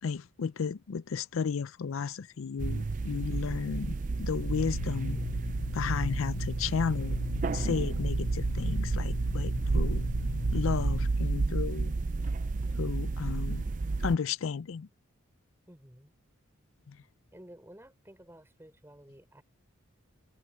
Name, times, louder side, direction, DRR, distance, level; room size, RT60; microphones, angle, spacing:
voice 1, 0.0-5.2 5.7-7.2 7.5-10.1 10.5-11.9 12.7-13.6 14.0-14.9 16.9-17.0, left 6 dB, 75° left, 0.5 m, -33 dB
sound 1, 2.6-14.2, right 3 dB, 40° right, 0.4 m, -31 dB
sound 2, 4.7-11.1, left 4 dB, 60° left, 0.9 m, -38 dB
voice 2, 15.7-16.1 17.3-19.4, equal, 10° right, 4.2 m, -53 dB
head